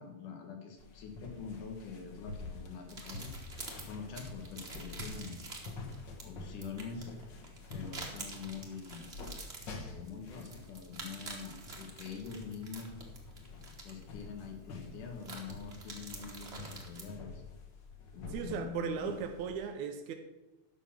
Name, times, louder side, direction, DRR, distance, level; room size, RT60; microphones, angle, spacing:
voice 1, 0.0-3.3 3.8-5.3 6.2-7.1 7.7-9.2 9.9-12.9 13.8-17.4 18.1-19.2, left 6 dB, 90° left, 3.1 m, -45 dB
sound 1, 0.8-19.5, left 3 dB, 55° left, 1.4 m, -48 dB
sound 2, 2.9-17.1, right 3 dB, 30° right, 1.2 m, -49 dB
voice 2, 18.3-20.1, right 7 dB, 80° right, 2.0 m, -37 dB
10.5 x 6.4 x 6.1 m
omnidirectional pair, 3.5 m